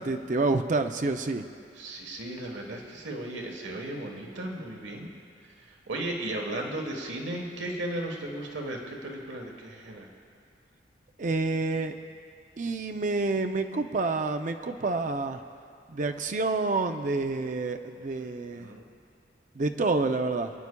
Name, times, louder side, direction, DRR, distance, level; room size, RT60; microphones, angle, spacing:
voice 1, 0.0-1.5 11.2-11.9 12.6-15.4 15.9-18.7 19.6-20.5, right 3 dB, 45° right, 7 dB, 0.5 m, -28 dB
voice 2, 1.8-5.1 5.7-10.1 18.5-18.8, right 1 dB, 85° right, 1 dB, 1.3 m, -35 dB
27.5 x 9.6 x 2.3 m, 2.3 s
head